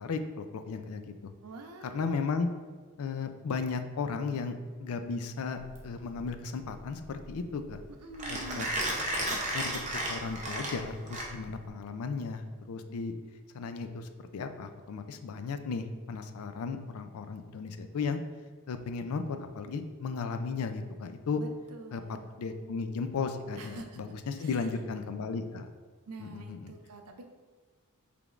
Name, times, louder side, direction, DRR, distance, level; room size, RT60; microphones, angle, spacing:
voice 1, 0.0-1.3 1.8-2.5 3.0-7.8 8.3-8.7 9.1-9.2 9.5-9.8 10.1-13.1 13.5-18.2 18.7-21.4 21.9-25.7 26.2-26.7, left 4 dB, 75° left, 8 dB, 0.4 m, -35 dB
voice 2, 1.4-2.2 8.0-8.7 21.3-22.3 23.6-24.0 24.3-24.8 26.1-27.2, right 2 dB, 85° right, 5 dB, 0.5 m, -46 dB
Mechanisms, 5.6-11.7, right 1 dB, 30° right, 0.7 m, -34 dB
4.9 x 3.3 x 2.4 m, 1.5 s
head